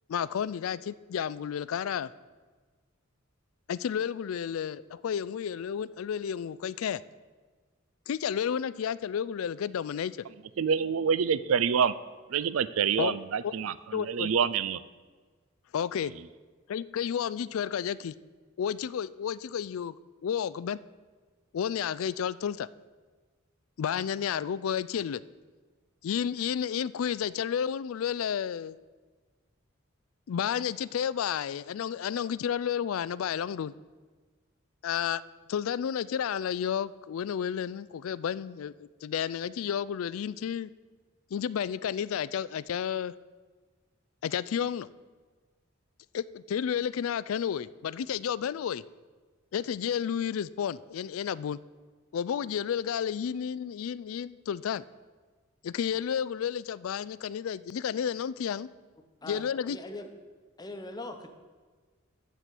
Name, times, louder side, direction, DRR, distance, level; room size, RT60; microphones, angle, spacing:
voice 1, 0.1-2.1 3.7-7.0 8.1-10.2 13.0-13.2 13.4-13.5 13.9-14.5 15.7-16.1 16.7-18.1 18.6-20.0 20.2-20.8 21.5-22.7 23.8-25.2 26.0-28.8 30.3-33.7 34.8-35.2 35.5-40.7 41.3-43.1 44.2-44.9 46.1-48.8 49.5-51.6 52.1-54.8 55.6-58.7 59.3-59.8, left 8 dB, 85° left, 0.4 m, -31 dB
voice 2, 10.6-11.9 12.3-14.8, right 6 dB, 85° right, 0.5 m, -27 dB
voice 3, 59.7-60.1 60.6-61.3, left 2 dB, 20° left, 0.9 m, -40 dB
13.0 x 4.5 x 8.2 m
head